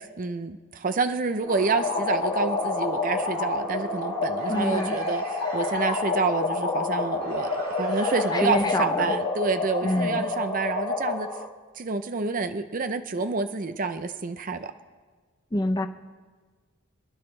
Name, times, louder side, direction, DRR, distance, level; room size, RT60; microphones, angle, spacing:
voice 1, 0.0-5.2 5.5-11.3 11.8-14.7, right 4 dB, 40° right, 9 dB, 0.5 m, -28 dB
sound 1, 1.4-9.1, equal, 75° right, 4.7 m, -40 dB
sound 2, 1.5-11.5, left 3 dB, 75° left, 1.9 m, -28 dB
voice 2, 4.5-5.0 8.3-9.1 9.8-10.3 15.5-15.9, left 1 dB, 20° left, 7 dB, 0.6 m, -26 dB
26.5 x 10.0 x 3.3 m, 1.4 s
head